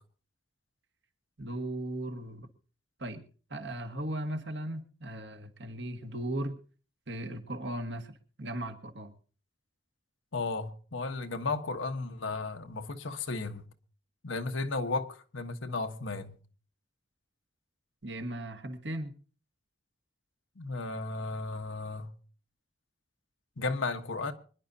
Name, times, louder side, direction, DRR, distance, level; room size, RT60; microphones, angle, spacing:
voice 1, 1.4-2.5 3.0-3.2 3.5-6.6 7.1-9.1 18.0-19.1, right 1 dB, 65° right, 1.7 m, -37 dB
voice 2, 10.3-13.7 14.2-16.4 20.6-22.1 23.6-24.3, left 3 dB, 90° left, 1.2 m, -34 dB
25.0 x 11.0 x 2.7 m
head